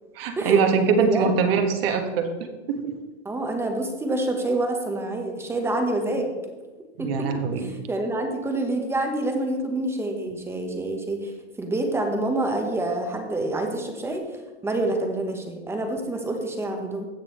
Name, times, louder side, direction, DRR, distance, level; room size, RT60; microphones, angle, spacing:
voice 1, 0.1-2.3 2.7-2.9 7.0-7.7, right 5 dB, 55° right, 6 dB, 1.5 m, -22 dB
voice 2, 1.0-1.3 3.2-6.3 7.0-7.3 7.6-11.3 11.6-14.4 14.6-17.1, right 2 dB, 5° right, 4 dB, 1.0 m, -27 dB
16.0 x 6.2 x 3.1 m, 1.2 s
hypercardioid pair, 145°, 34 cm